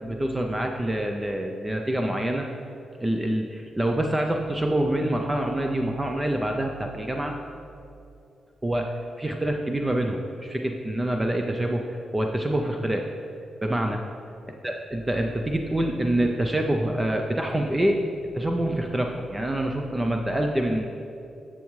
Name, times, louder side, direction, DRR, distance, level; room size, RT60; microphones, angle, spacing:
voice 1, 0.0-2.5 3.0-7.4 8.6-13.1 13.6-14.0 14.6-18.0 18.3-20.9, right 1 dB, 10° right, 3 dB, 0.3 m, -26 dB
10.5 x 7.2 x 3.1 m, 2.7 s
wide cardioid pair, 175°, 0 cm